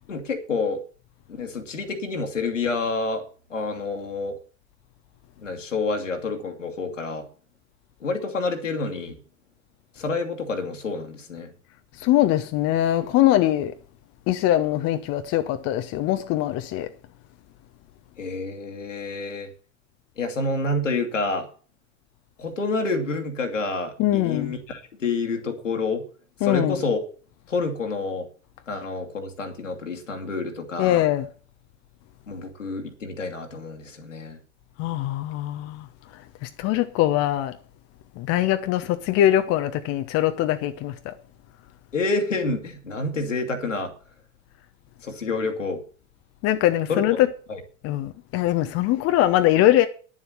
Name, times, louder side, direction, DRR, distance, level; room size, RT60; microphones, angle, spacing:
voice 1, 0.1-0.8 1.4-3.2 3.5-4.4 5.4-7.3 8.0-9.2 10.0-11.5 18.2-19.5 20.2-21.5 22.4-26.0 26.4-27.0 27.5-28.3 28.7-31.0 32.3-34.4 41.9-43.9 45.0-45.8 46.9-47.0 47.5-47.6, left 3 dB, 80° left, 2.3 m, -28 dB
voice 2, 12.0-13.7 14.3-16.9 24.0-24.5 26.4-26.8 30.8-31.3 34.8-35.9 36.1-37.6 38.2-41.1 46.4-47.3 47.8-49.9, left 13 dB, 40° left, 0.9 m, -22 dB
10.5 x 7.4 x 7.7 m
figure-of-eight pair, 75°, 37 cm